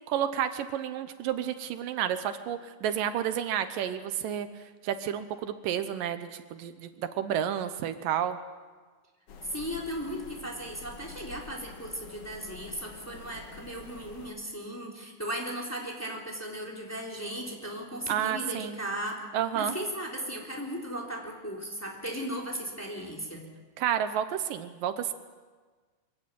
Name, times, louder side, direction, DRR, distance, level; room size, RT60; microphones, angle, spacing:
voice 1, 0.1-4.5 4.8-8.4 18.1-18.8 19.3-19.7 23.8-25.1, right 10 dB, 80° right, 10 dB, 2.6 m, -30 dB
sound 1, 9.3-14.3, left 5 dB, 50° left, 2.3 m, -48 dB
voice 2, 9.5-19.2 19.5-23.5, equal, 5° left, -2 dB, 3.3 m, -36 dB
23.5 x 16.0 x 9.4 m, 1.4 s
omnidirectional pair, 3.9 m